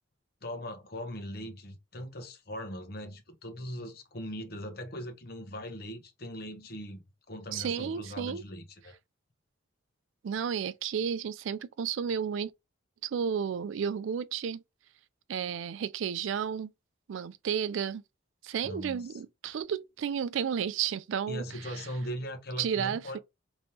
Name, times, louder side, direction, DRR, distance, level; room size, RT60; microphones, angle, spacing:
voice 1, 0.4-9.0 18.6-19.2 21.3-23.2, equal, 50° left, 1.0 m, -40 dB
voice 2, 7.5-8.4 10.2-12.5 13.0-14.6 15.3-16.7 17.1-18.0 18.4-21.8 22.6-23.2, right 7 dB, 75° right, 0.4 m, -32 dB
3.4 x 3.0 x 2.7 m
head